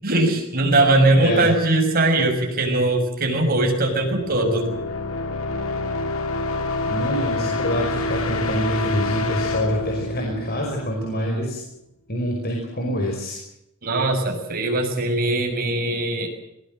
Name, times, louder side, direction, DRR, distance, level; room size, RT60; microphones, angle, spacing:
voice 1, 0.0-4.8 13.8-16.3, right 2 dB, 40° right, 3 dB, 6.4 m, -20 dB
voice 2, 1.1-1.5 6.9-11.6 12.1-13.4, equal, 45° left, 0 dB, 5.4 m, -26 dB
sound 1, 3.7-11.4, left 2 dB, 65° left, 2.5 m, -27 dB
22.0 x 20.0 x 7.8 m, 0.83 s
head